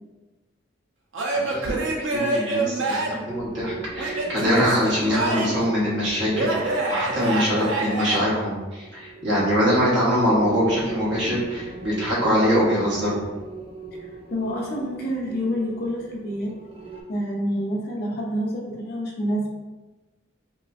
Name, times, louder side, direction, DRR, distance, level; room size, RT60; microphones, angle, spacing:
Male speech man speaking / Yell / Laughter, 1.1-3.3 4.0-5.7 6.3-8.2, right 2 dB, 85° right, 0.6 m, -26 dB
voice 1, 1.5-1.8 2.1-13.2, equal, 65° right, -6 dB, 1.1 m, -23 dB
sound 1, 3.3-17.0, right 4 dB, 30° right, 0.4 m, -38 dB
voice 2, 14.3-16.5 17.1-19.5, equal, 55° left, -2 dB, 0.6 m, -27 dB
3.1 x 2.8 x 2.5 m, 1.2 s
head